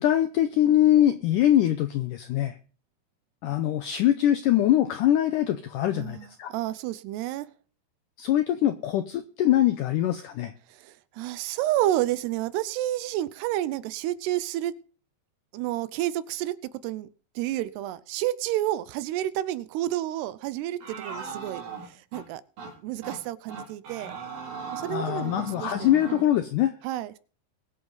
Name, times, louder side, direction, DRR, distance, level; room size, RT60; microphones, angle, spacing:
voice 1, 0.0-2.6 3.4-6.5 8.2-10.5 24.9-26.7, left 12 dB, 90° left, 10 dB, 1.8 m, -23 dB
voice 2, 5.9-7.5 10.7-14.7 15.5-16.6 16.8-17.1 17.4-22.4 22.8-24.1 24.7-25.3 25.6-26.3 26.8-27.2, right 14 dB, 85° right, 16 dB, 2.8 m, -30 dB
sound 1, 20.8-22.3 22.6-22.7 23.0-23.2 23.5-26.3, right 5 dB, 60° right, 5.0 m, -39 dB
22.0 x 7.6 x 4.0 m, 0.40 s
omnidirectional pair, 4.7 m